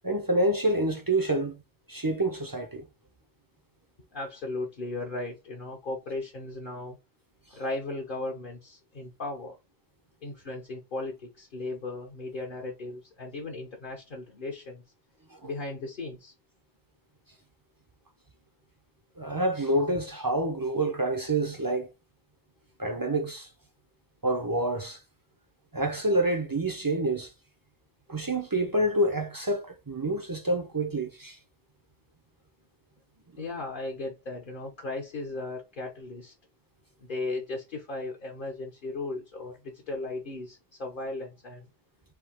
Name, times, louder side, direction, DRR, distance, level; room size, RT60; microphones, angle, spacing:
voice 1, 0.0-1.6 1.9-2.8 15.3-15.5 19.2-21.9 22.8-23.5 24.2-25.0 25.7-27.3 28.1-31.4, right 1 dB, 30° right, 0.5 m, -27 dB
voice 2, 4.1-7.0 7.5-9.6 10.2-14.8 15.4-16.3 33.4-36.3 37.0-41.7, left 2 dB, 55° left, 1.1 m, -36 dB
3.6 x 2.7 x 4.3 m
omnidirectional pair, 1.0 m